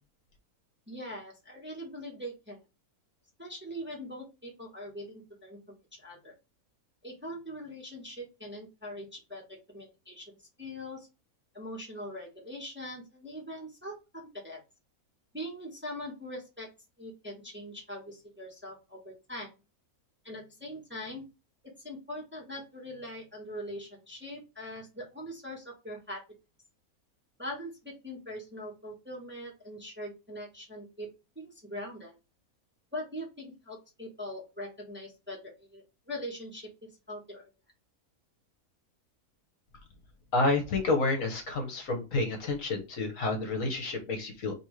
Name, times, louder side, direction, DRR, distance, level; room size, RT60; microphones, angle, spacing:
voice 1, 0.9-2.6 3.4-5.6 5.9-6.3 7.0-10.3 10.6-11.1 11.5-14.6 15.3-16.7 17.0-19.5 20.2-21.2 21.8-26.2 27.4-31.1 31.3-32.2 32.9-37.5, equal, 10° right, -2 dB, 1.1 m, -42 dB
voice 2, 40.3-44.5, left 3 dB, 60° left, 4 dB, 1.4 m, -29 dB
5.4 x 2.7 x 3.1 m, 0.28 s
omnidirectional pair, 1.6 m